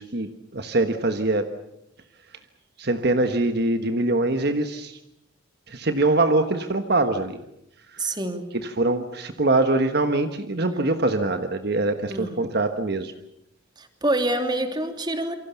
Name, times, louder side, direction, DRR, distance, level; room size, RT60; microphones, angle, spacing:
voice 1, 0.0-1.5 2.8-5.0 5.7-7.4 7.9-8.2 8.5-13.1, right 2 dB, 55° right, 8 dB, 1.4 m, -23 dB
voice 2, 8.0-8.5 12.1-12.5 13.8-15.4, right 1 dB, 20° right, 6 dB, 2.9 m, -26 dB
28.5 x 24.5 x 7.1 m, 0.83 s
head